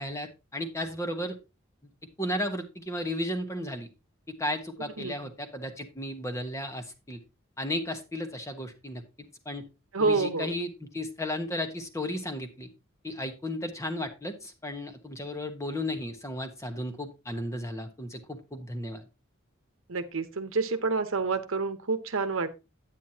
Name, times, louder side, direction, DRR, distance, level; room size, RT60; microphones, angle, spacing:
voice 1, 0.0-1.4 2.2-3.9 4.4-7.2 7.6-9.0 9.4-9.6 10.0-12.7 13.0-19.0, left 1 dB, 15° left, 6 dB, 1.2 m, -34 dB
voice 2, 9.9-10.5 19.9-22.5, right 4 dB, 75° right, 9 dB, 1.0 m, -28 dB
9.3 x 9.1 x 2.8 m, 0.26 s
head